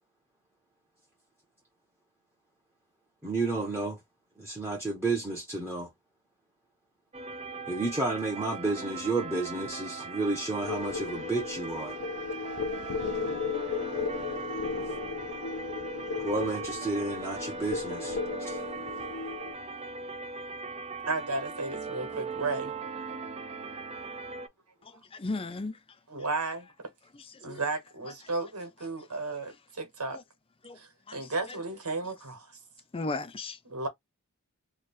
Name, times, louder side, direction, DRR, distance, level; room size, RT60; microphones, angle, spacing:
voice 1, 3.2-4.0 4.4-5.9 7.7-12.0 16.1-18.6, right 3 dB, 10° right, 0.9 m, -31 dB
sound 1, 7.1-24.5, right 4 dB, 30° right, 0.5 m, -39 dB
sound 2, 10.6-19.5, left 5 dB, 85° left, 0.5 m, -35 dB
voice 2, 21.0-22.7 26.1-26.7 27.4-30.2 30.8-32.5 33.7-33.9, right 3 dB, 85° right, 1.5 m, -34 dB
voice 3, 24.8-25.8 27.1-27.6 28.0-28.1 30.1-30.2 30.6-30.8 31.1-31.6 32.9-33.6, left 2 dB, 25° left, 0.5 m, -37 dB
3.2 x 2.3 x 4.3 m
head